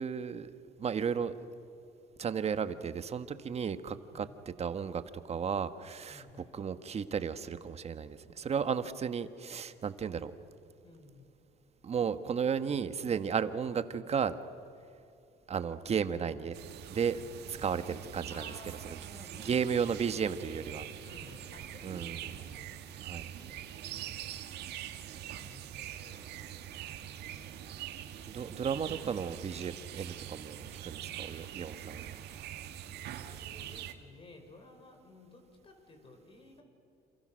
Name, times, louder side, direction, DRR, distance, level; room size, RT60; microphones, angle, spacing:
voice 1, 0.0-1.4 2.2-4.2 4.6-6.2 6.5-10.3 11.8-14.4 15.5-16.6 16.9-18.5 18.9-19.0 19.4-20.9 21.8-22.3 23.0-23.3 28.2-32.2, right 7 dB, 40° right, 11 dB, 1.4 m, -34 dB
voice 2, 6.1-6.6 10.8-11.3 18.3-19.7 21.0-22.6 23.4-24.2 25.4-26.4 33.1-36.6, left 2 dB, 30° left, 4 dB, 5.8 m, -55 dB
sound 1, 16.5-33.9, right 11 dB, 80° right, 1.9 m, -44 dB
28.5 x 28.0 x 6.4 m, 2.6 s
cardioid pair, 110°, 17 cm